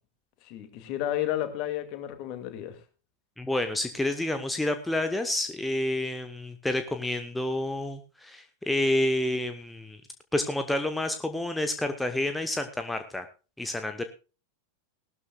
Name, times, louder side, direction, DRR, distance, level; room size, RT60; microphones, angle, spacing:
voice 1, 0.4-2.8, left 12 dB, 40° left, 2.2 m, -32 dB
voice 2, 3.4-10.0 10.3-13.3 13.6-14.0, left 1 dB, 5° left, 0.9 m, -29 dB
18.5 x 12.5 x 2.3 m
figure-of-eight pair, 90°, 0 cm